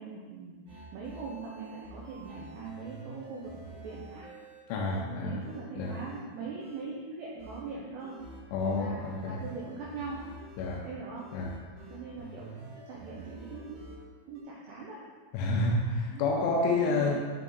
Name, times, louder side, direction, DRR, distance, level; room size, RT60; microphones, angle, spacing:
voice 1, 0.0-4.3 5.1-8.2 8.7-10.2 10.8-11.3 11.9-12.6 12.9-13.8 14.3-15.0 16.1-16.2 16.8-17.1, right 4 dB, 90° right, -4 dB, 2.4 m, -41 dB
sound 1, 0.7-5.1 5.4-6.4 6.6-6.9 7.4-14.4, right 2 dB, 60° right, 2.7 m, -48 dB
voice 2, 4.7-5.5 5.8-6.0 8.5-9.4 10.6-10.9 11.3-11.6 15.3-17.2, left 3 dB, 80° left, -1 dB, 2.8 m, -29 dB
7.3 x 4.6 x 3.9 m, 1.5 s
omnidirectional pair, 5.8 m